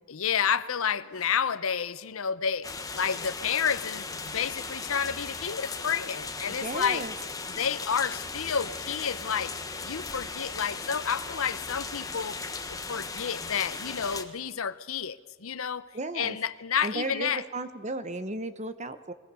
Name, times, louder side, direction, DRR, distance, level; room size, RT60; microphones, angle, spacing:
voice 1, 0.1-2.7 2.9-7.1 7.6-9.5 9.8-12.4 12.7-15.9 16.1-17.4, left 7 dB, 70° left, 14 dB, 0.8 m, -30 dB
sound 1, 2.6-14.2, left 4 dB, 15° left, 1.3 m, -37 dB
voice 2, 6.5-7.1 15.9-16.4 16.8-19.1, right 2 dB, 30° right, 12 dB, 1.0 m, -34 dB
22.0 x 18.5 x 7.0 m, 1.5 s
head